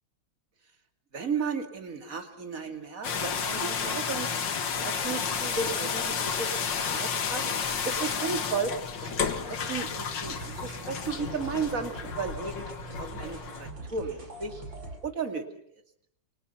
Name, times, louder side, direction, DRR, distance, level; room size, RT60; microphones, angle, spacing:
voice 1, 1.1-4.3 4.7-7.4 7.8-8.7 9.0-12.7 13.0-14.5 15.0-15.5, right 5 dB, 40° right, 6 dB, 3.0 m, -34 dB
sound 1, 3.0-13.7, left 6 dB, 65° left, 2.3 m, -32 dB
sound 2, 10.0-15.0, right 2 dB, 65° right, 7.0 m, -43 dB
29.5 x 24.5 x 5.8 m, 0.69 s
omnidirectional pair, 2.2 m